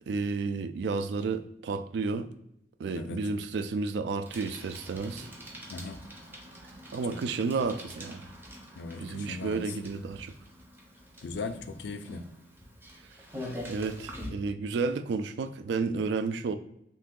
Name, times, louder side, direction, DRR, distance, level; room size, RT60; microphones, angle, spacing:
voice 1, 0.1-2.3 2.8-5.3 6.9-8.3 9.0-10.3 13.7-16.6, right 4 dB, 70° right, 0.3 m, -31 dB
Bicycle, 4.2-14.3, equal, 10° right, 0.5 m, -45 dB
voice 2, 8.8-9.6 11.2-12.2, left 4 dB, 75° left, 0.3 m, -38 dB
2.8 x 2.6 x 3.6 m
head